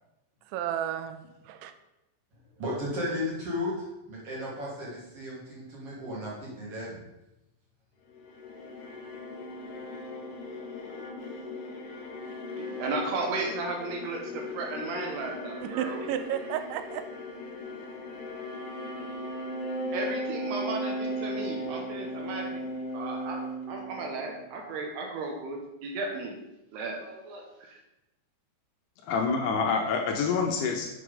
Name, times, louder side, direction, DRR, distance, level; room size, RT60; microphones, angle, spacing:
voice 1, 0.5-1.7 15.6-17.1, right 10 dB, 90° right, 9 dB, 3.0 m, -33 dB
voice 2, 2.6-3.7 4.1-7.0, left 1 dB, 35° right, -5 dB, 3.1 m, -34 dB
sound 1, 8.1-24.5, equal, 55° left, 2.4 m, -37 dB
voice 3, 12.6-16.0 19.9-22.6 22.9-26.4 26.7-27.7, right 3 dB, 70° right, 1 dB, 2.9 m, -35 dB
voice 4, 29.1-31.0, left 5 dB, 75° left, 2 dB, 2.6 m, -27 dB
7.8 x 6.5 x 5.1 m, 0.94 s
omnidirectional pair, 5.2 m